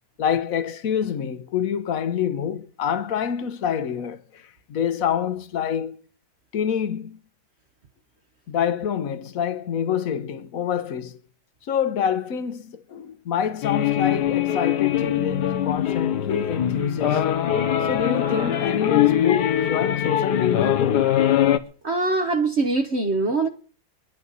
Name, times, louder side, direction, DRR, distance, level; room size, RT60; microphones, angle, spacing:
voice 1, 0.2-4.4 4.7-6.0 6.5-7.2 8.5-11.2 11.7-17.2 17.8-21.0, left 8 dB, 60° left, 1.3 m, -26 dB
sound 1, 13.6-21.6, left 10 dB, 90° left, 1.6 m, -22 dB
voice 2, 21.8-23.5, right 3 dB, 45° right, 1.3 m, -22 dB
24.5 x 11.0 x 4.0 m
omnidirectional pair, 1.8 m